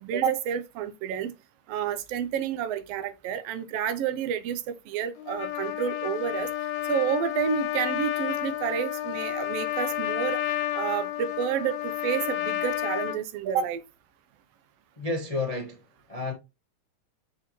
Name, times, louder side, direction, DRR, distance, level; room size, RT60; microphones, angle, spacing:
voice 1, 0.0-1.3 1.7-6.5 6.9-10.4 10.7-13.8, right 8 dB, 85° right, 1.4 m, -29 dB
Trumpet, 5.2-13.2, left 13 dB, 80° left, 2.1 m, -31 dB
voice 2, 15.0-15.8 16.1-16.3, left 3 dB, 55° left, 0.4 m, -30 dB
7.8 x 4.2 x 3.0 m
omnidirectional pair, 3.6 m